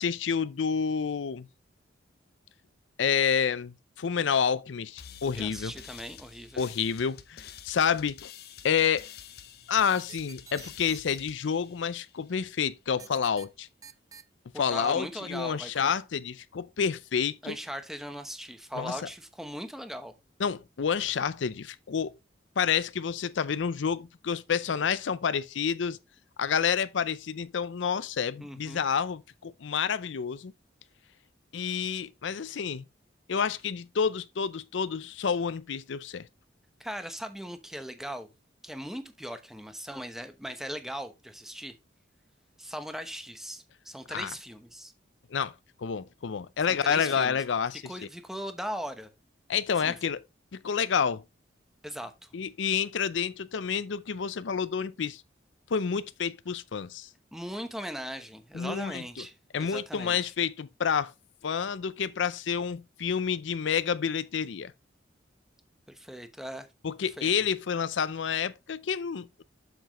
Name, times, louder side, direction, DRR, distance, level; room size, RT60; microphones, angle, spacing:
voice 1, 0.0-1.5 3.0-5.7 6.6-8.3 8.6-9.1 9.7-13.7 14.6-17.5 18.8-18.9 20.4-22.2 22.6-26.0 26.4-30.5 31.5-32.8 33.3-36.3 44.1-44.3 45.3-45.5 45.8-47.9 49.5-50.2 50.5-51.2 52.3-55.2 55.7-57.1 58.5-59.0 59.5-61.1 61.4-64.7 66.8-69.4, left 7 dB, 80° left, 0.5 m, -29 dB
sound 1, 5.0-12.5, left 8 dB, 55° left, 0.8 m, -48 dB
voice 2, 5.3-6.6 14.5-15.9 17.4-20.1 28.4-28.8 36.8-38.3 38.6-41.7 42.6-44.9 46.7-47.4 47.8-49.1 49.8-50.0 51.8-52.3 57.3-60.3 65.9-66.7 67.0-67.3, equal, ahead, 0.9 m, -39 dB
sound 2, 10.1-11.2 13.0-13.5 13.8-14.2, right 7 dB, 20° right, 0.4 m, -47 dB
7.7 x 7.1 x 3.0 m
head